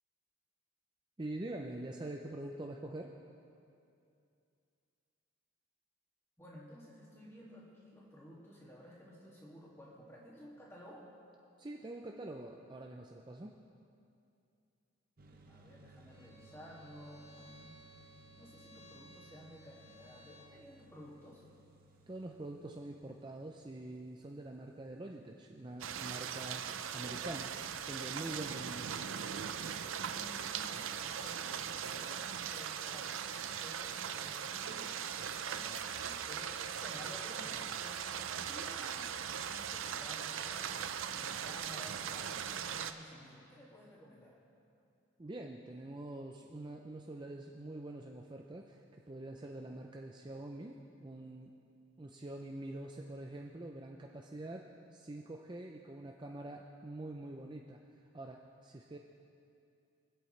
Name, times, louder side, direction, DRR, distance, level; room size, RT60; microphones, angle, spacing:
voice 1, 1.2-3.1 11.6-13.6 22.1-26.7 26.9-27.5 27.8-29.1 45.2-48.8 49.1-51.5 52.0-57.8 58.1-59.0, right 1 dB, 20° right, 1 dB, 0.5 m, -45 dB
voice 2, 6.4-11.0 15.5-17.8 18.4-21.4 30.0-33.2 33.6-44.4, equal, 15° left, -5 dB, 2.3 m, -54 dB
sound 1, 15.2-27.6, right 2 dB, 45° right, 0.9 m, -64 dB
Bowed string instrument, 16.1-20.6, equal, 30° left, 1.5 m, -59 dB
sound 2, 25.8-42.9, right 8 dB, 75° right, 0.5 m, -39 dB
24.0 x 8.2 x 3.3 m, 2.6 s
head